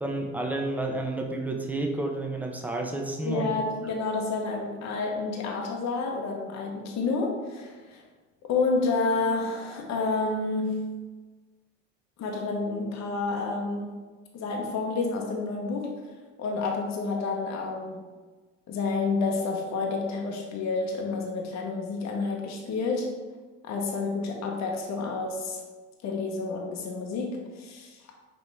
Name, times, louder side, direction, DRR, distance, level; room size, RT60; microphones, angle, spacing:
voice 1, 0.0-3.6, right 2 dB, 5° right, 2 dB, 0.7 m, -30 dB
voice 2, 3.2-8.0 8.4-11.0 12.2-14.0 14.3-16.1 16.4-18.1 18.7-23.2 23.7-25.6 26.0-28.0, left 3 dB, 45° left, 1 dB, 0.9 m, -29 dB
5.3 x 3.0 x 3.3 m, 1.3 s
hypercardioid pair, 60°, 37 cm